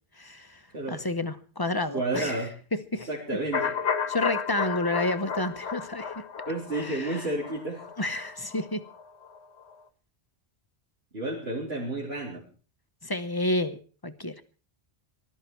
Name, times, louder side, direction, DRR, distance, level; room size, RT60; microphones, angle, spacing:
voice 1, 0.2-0.6 0.9-2.4 2.7-3.1 4.1-6.2 6.8-7.2 8.0-8.8 13.0-14.4, left 2 dB, 20° left, 11 dB, 1.1 m, -30 dB
voice 2, 1.9-2.6 3.1-3.8 6.5-7.9 11.1-12.4, right 2 dB, 70° right, -4 dB, 4.1 m, -31 dB
sound 1, 3.5-9.4 9.7-9.8, left 6 dB, 85° left, 1.4 m, -33 dB
19.5 x 12.5 x 4.6 m, 0.38 s
omnidirectional pair, 1.1 m